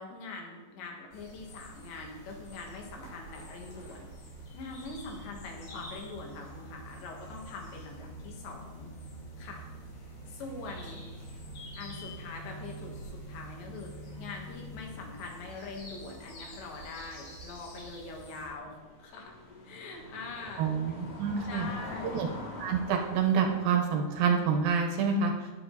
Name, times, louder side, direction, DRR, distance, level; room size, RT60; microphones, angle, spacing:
voice 1, 0.0-4.1 4.5-8.9 9.4-9.7 10.3-11.0 11.8-13.9 14.2-18.7 19.0-19.4 19.6-20.8 21.4-22.3, left 3 dB, 85° left, 0 dB, 4.2 m, -43 dB
sound 1, 1.1-18.5, equal, 60° left, 4.6 m, -46 dB
sound 2, 9.4-15.0 15.3-15.5 16.2-23.6, left 2 dB, 45° left, 4.9 m, -47 dB
voice 2, 20.6-21.7 22.1-22.3 22.6-25.3, right 6 dB, 70° right, 4 dB, 2.5 m, -27 dB
19.0 x 7.2 x 4.1 m, 1.2 s
omnidirectional pair, 4.9 m